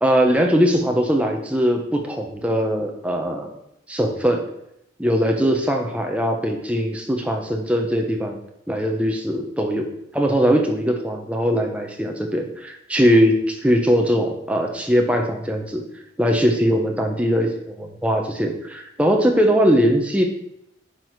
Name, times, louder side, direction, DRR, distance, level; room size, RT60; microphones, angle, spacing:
voice 1, 0.0-3.5 3.9-4.4 5.0-8.4 8.7-9.9 10.1-15.8 16.2-20.2, equal, 5° right, 2 dB, 0.9 m, -20 dB
9.6 x 4.2 x 4.6 m, 0.78 s
head